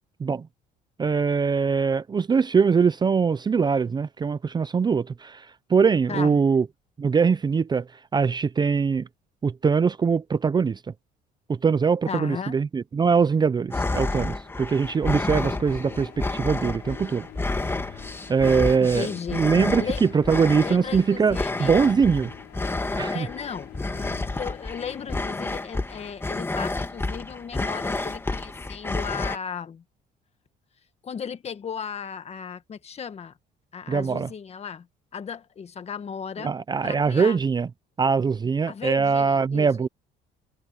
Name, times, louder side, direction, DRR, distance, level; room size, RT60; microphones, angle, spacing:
voice 1, 1.0-6.6 7.0-7.8 8.1-9.1 9.4-10.8 11.6-17.3 18.3-19.1 19.3-22.3 23.0-23.3 33.9-34.3 36.4-37.7 38.0-39.9, right 5 dB, 25° right, 0.6 m, -22 dB
voice 2, 6.1-6.4 12.1-12.6 18.8-19.4 19.8-20.0 20.6-21.7 23.1-29.8 31.0-33.3 33.7-34.9 35.1-36.5 36.8-37.4 38.7-39.9, left 7 dB, 40° left, 1.7 m, -35 dB
sound 1, 13.7-29.4, left 2 dB, 15° left, 1.9 m, -30 dB
sound 2, 14.3-26.2, left 14 dB, 75° left, 4.2 m, -45 dB
cardioid pair, 110°, 17 cm